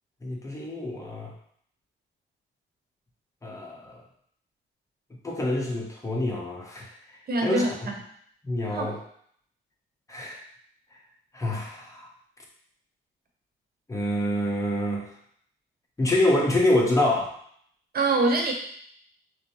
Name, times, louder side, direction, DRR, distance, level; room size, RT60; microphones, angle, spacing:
voice 1, 0.2-1.3 3.4-4.0 5.2-6.9 7.4-7.6 8.4-9.0 10.1-10.4 11.3-12.1 13.9-15.1 16.0-17.3, left 1 dB, 15° left, -2 dB, 1.2 m, -26 dB
voice 2, 7.3-7.9 8.7-9.0 17.9-18.5, right 2 dB, 50° right, 2 dB, 1.1 m, -24 dB
6.1 x 2.2 x 3.3 m, 0.64 s
cardioid pair, 90°, 20 cm